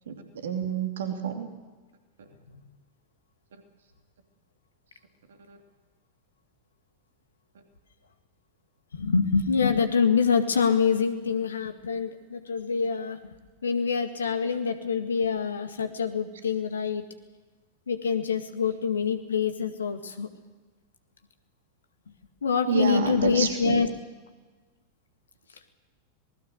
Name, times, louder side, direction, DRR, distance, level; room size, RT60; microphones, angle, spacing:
voice 1, 0.1-1.5 5.5-5.6 22.7-23.8, right 6 dB, 65° right, 5 dB, 2.8 m, -29 dB
voice 2, 8.9-13.2 13.6-17.0 17.9-20.3 22.4-23.9, left 6 dB, 70° left, 8 dB, 2.0 m, -25 dB
26.0 x 20.0 x 6.6 m, 1.3 s
figure-of-eight pair, 90°, 0 cm